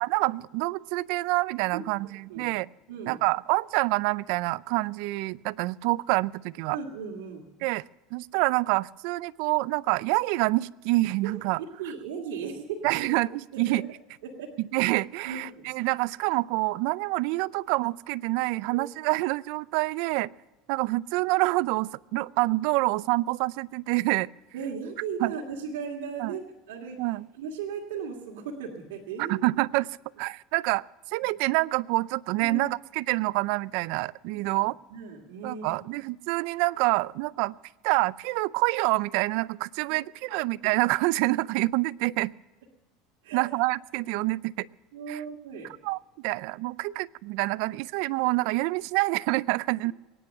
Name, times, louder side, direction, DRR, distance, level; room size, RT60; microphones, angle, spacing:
voice 1, 0.0-2.7 3.1-6.8 7.6-7.8 8.1-11.6 12.8-13.3 13.6-13.9 14.6-20.3 20.7-24.3 25.2-25.3 26.2-26.3 27.0-27.3 29.2-29.9 30.2-30.8 31.1-34.8 35.4-37.6 37.8-42.3 43.3-44.7 45.1-45.2 45.8-49.9, right 21 dB, 70° right, 21 dB, 0.4 m, -27 dB
voice 2, 6.7-7.5 11.2-11.3 11.8-13.0 13.5-13.8 14.2-14.5 15.2-15.6 18.7-18.8 24.5-27.0 27.4-29.4 32.4-32.6 34.3-34.5 34.9-35.7 39.9-40.3 43.2-43.5 44.9-45.7 46.3-46.4, right 6 dB, 85° right, -4 dB, 2.5 m, -37 dB
22.5 x 10.0 x 5.6 m, 1.2 s
supercardioid pair, 125°, 0 cm